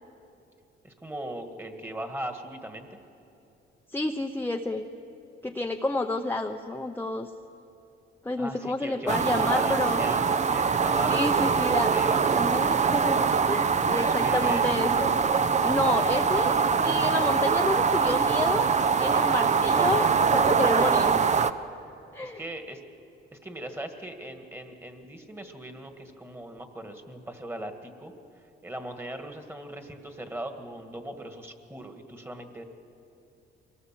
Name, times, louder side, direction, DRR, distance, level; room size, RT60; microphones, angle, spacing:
voice 1, 0.8-3.0 8.4-11.6 11.9-12.4 13.8-14.7 16.1-16.2 22.2-22.8 23.3-28.1 28.6-32.6, right 1 dB, 10° right, 6 dB, 1.9 m, -39 dB
voice 2, 3.9-4.9 5.4-7.3 8.2-10.0 11.1-11.9 12.3-13.2 13.5-15.2 15.6-16.5 16.8-18.7 19.0-21.4 22.1-22.4, left 2 dB, 10° left, 3 dB, 0.8 m, -29 dB
sound 1, 9.1-21.5, right 5 dB, 35° right, 0.7 m, -23 dB
23.5 x 18.0 x 7.6 m, 2.9 s
cardioid pair, 90°, 20 cm